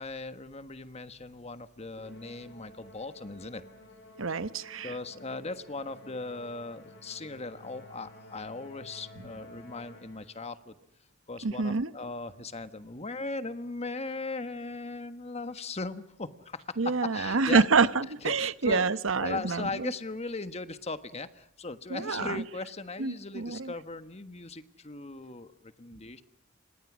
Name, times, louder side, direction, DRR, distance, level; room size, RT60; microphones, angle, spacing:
voice 1, 0.0-3.6 4.8-10.7 11.3-17.7 18.2-18.9 19.2-26.2, left 3 dB, 35° left, 1.4 m, -38 dB
Musical instrument, 2.0-10.5, equal, 65° left, 6.0 m, -52 dB
voice 2, 4.2-4.9 11.4-11.9 16.8-19.9 21.9-22.4 23.0-23.7, right 4 dB, 90° right, 1.0 m, -27 dB
29.5 x 26.5 x 6.2 m
head